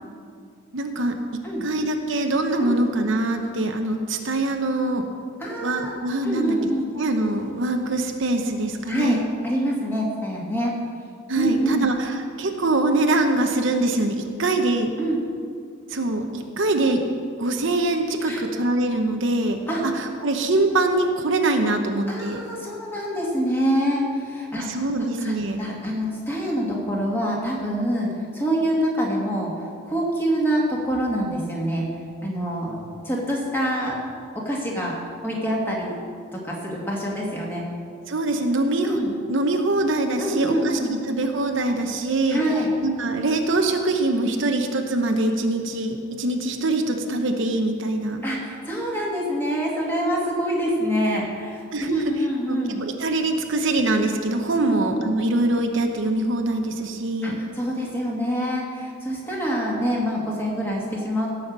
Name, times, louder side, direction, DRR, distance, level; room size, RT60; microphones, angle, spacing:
voice 1, 0.7-5.1 5.6-6.7 7.0-9.3 11.3-14.9 15.9-17.0 17.4-22.4 24.6-25.6 38.1-42.4 42.8-48.2 51.7-57.4, right 2 dB, 55° right, 4 dB, 0.9 m, -24 dB
voice 2, 5.4-5.9 6.2-6.9 8.9-9.2 9.4-10.7 11.4-11.9 15.0-15.2 18.2-18.4 19.7-19.8 22.1-24.7 25.2-29.5 29.9-31.9 32.2-32.8 33.0-33.9 34.5-34.9 35.2-35.9 36.3-37.6 38.8-39.1 40.2-40.9 42.3-42.7 48.2-52.8 54.6-54.8 57.2-61.3, equal, 10° left, -3 dB, 2.1 m, -25 dB
17.0 x 5.8 x 7.3 m, 2.3 s
head